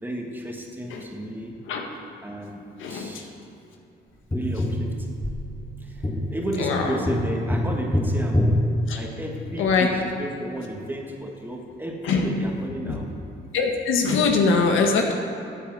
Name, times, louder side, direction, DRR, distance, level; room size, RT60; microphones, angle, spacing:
voice 1, 0.0-1.6 2.2-3.4 4.3-5.3 5.8-13.1, right 1 dB, 10° right, 0 dB, 1.9 m, -33 dB
voice 2, 2.8-3.2 6.6-7.0 8.9-9.0 9.6-9.9 12.0-12.4 12.8-13.0 13.5-15.1, left 4 dB, 85° left, 2 dB, 1.6 m, -22 dB
Tap, 4.3-9.6 12.2-12.3, left 1 dB, 15° left, 1.7 m, -26 dB
9.4 x 9.0 x 7.8 m, 2.8 s
cardioid pair, 90°, 20 cm